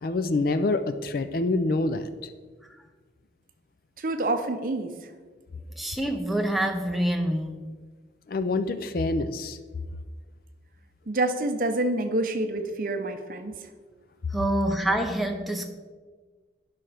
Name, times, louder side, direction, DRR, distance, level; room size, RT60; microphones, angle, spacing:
voice 1, 0.0-2.1 8.3-9.6, left 2 dB, 50° left, 11 dB, 0.4 m, -26 dB
voice 2, 4.0-5.1 11.1-13.7, right 2 dB, 50° right, 7 dB, 0.6 m, -27 dB
voice 3, 5.8-7.8 14.3-15.7, right 1 dB, ahead, 3 dB, 0.6 m, -27 dB
11.0 x 5.7 x 3.4 m, 1.5 s
head